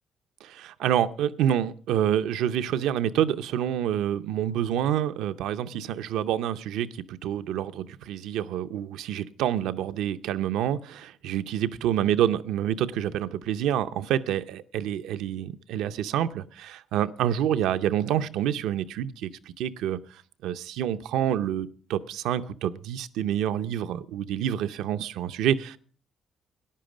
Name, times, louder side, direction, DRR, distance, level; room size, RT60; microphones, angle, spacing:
voice 1, 0.4-19.3 19.6-20.0 20.4-25.8, right 10 dB, 90° right, 0.6 m, -27 dB
13.0 x 10.5 x 5.0 m
cardioid pair, 90°, 0 cm